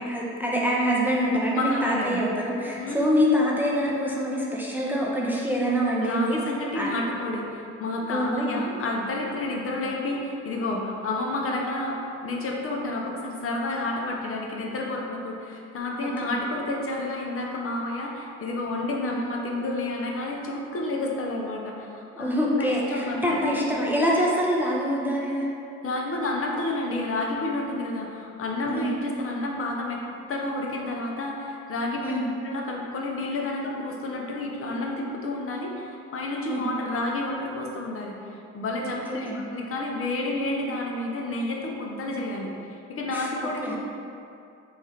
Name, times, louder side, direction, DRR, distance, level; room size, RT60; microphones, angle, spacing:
voice 1, 0.0-6.4 6.7-6.9 8.1-8.6 16.2-16.3 18.9-19.2 22.2-25.5 28.7-28.9 32.0-32.3 36.5-36.7 38.8-39.4 43.1-43.3 43.6-43.7, equal, 5° right, -4 dB, 0.4 m, -25 dB
voice 2, 1.5-2.2 2.8-3.1 6.0-23.6 25.8-30.0 30.3-32.2 32.4-38.2 38.5-42.5 42.9-43.8, left 2 dB, 45° left, -1 dB, 0.5 m, -30 dB
3.1 x 2.4 x 4.1 m, 2.6 s
cardioid pair, 90°, 30 cm